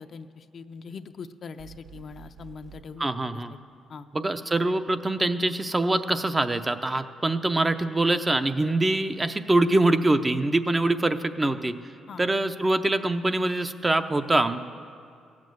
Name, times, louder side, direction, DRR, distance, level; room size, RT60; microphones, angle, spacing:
voice 1, 0.0-3.4 3.9-4.1 12.1-12.2, left 5 dB, 50° left, 9 dB, 0.5 m, -42 dB
sound 1, 1.6-2.9, right 9 dB, 65° right, 0.7 m, -48 dB
voice 2, 3.0-3.5 4.1-11.7 12.2-14.6, right 2 dB, 20° right, 9 dB, 0.6 m, -24 dB
16.5 x 7.4 x 7.7 m, 2.3 s
cardioid pair, 90°, 0 cm